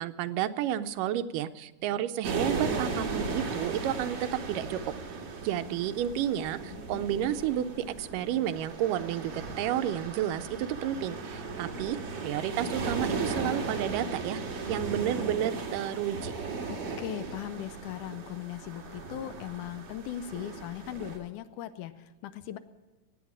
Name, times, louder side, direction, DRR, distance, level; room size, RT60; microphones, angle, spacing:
voice 1, 0.0-4.8 5.4-14.4 14.7-16.3, right 11 dB, 85° right, 11 dB, 2.2 m, -31 dB
sound 1, 2.2-21.2, right 3 dB, 50° right, 2.7 m, -36 dB
voice 2, 6.7-7.1 16.7-22.6, left 11 dB, 80° left, 12 dB, 2.1 m, -39 dB
16.5 x 9.4 x 8.7 m, 1.2 s
omnidirectional pair, 3.8 m